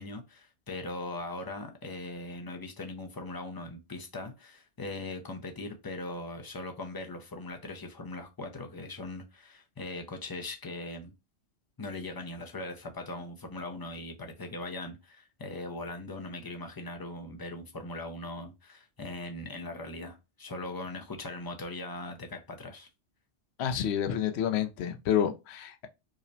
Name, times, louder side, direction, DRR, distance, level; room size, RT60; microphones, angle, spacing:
voice 1, 0.0-11.1 11.8-22.9, left 2 dB, 35° left, 0.3 m, -40 dB
voice 2, 23.6-25.9, left 9 dB, 75° left, 0.8 m, -29 dB
4.8 x 2.1 x 2.6 m
omnidirectional pair, 1.2 m